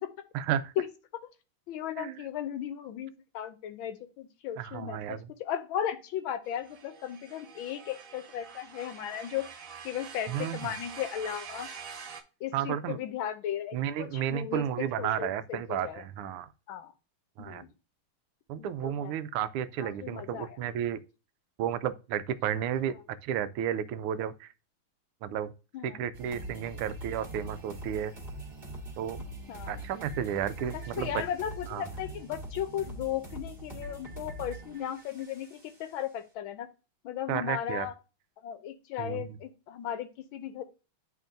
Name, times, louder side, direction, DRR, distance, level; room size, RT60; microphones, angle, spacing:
voice 1, 0.3-0.7 2.0-2.2 4.6-5.3 10.3-10.7 12.5-13.0 13.7-16.5 17.4-17.6 18.5-21.0 21.6-24.5 25.2-25.5 25.8-28.1 29.0-29.2 29.7-31.1 31.7-31.8 37.3-37.9 39.0-39.3, right 10 dB, 90° right, 1.5 m, -32 dB
voice 2, 1.7-9.5 9.8-11.7 12.4-16.0 16.7-16.9 17.4-17.7 18.6-19.1 19.8-20.6 25.7-26.0 29.5-29.9 30.7-36.7 37.0-37.9 38.4-40.6, left 10 dB, 75° left, 1.4 m, -36 dB
sound 1, 6.4-12.2, right 6 dB, 60° right, 0.8 m, -45 dB
sound 2, 26.1-36.0, right 1 dB, 25° right, 1.6 m, -43 dB
10.5 x 3.6 x 2.6 m
omnidirectional pair, 2.3 m